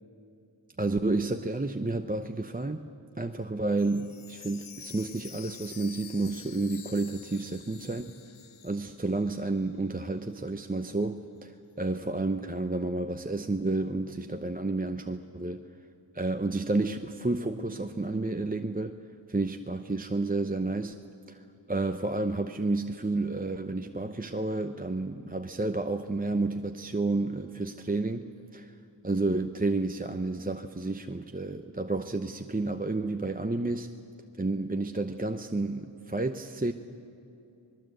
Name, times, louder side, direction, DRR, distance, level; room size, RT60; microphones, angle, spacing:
voice 1, 0.8-2.9 3.2-8.2 8.6-15.6 16.1-19.0 19.3-21.0 21.3-21.4 21.7-28.2 28.5-28.7 29.0-33.9 34.4-36.7, right 2 dB, 20° right, 6 dB, 0.8 m, -30 dB
Chime, 3.7-9.7 10.0-10.1 10.6-10.7, left 8 dB, 90° left, 0.7 m, -48 dB
25.5 x 21.0 x 7.8 m, 2.8 s
wide cardioid pair, 65°, 46 cm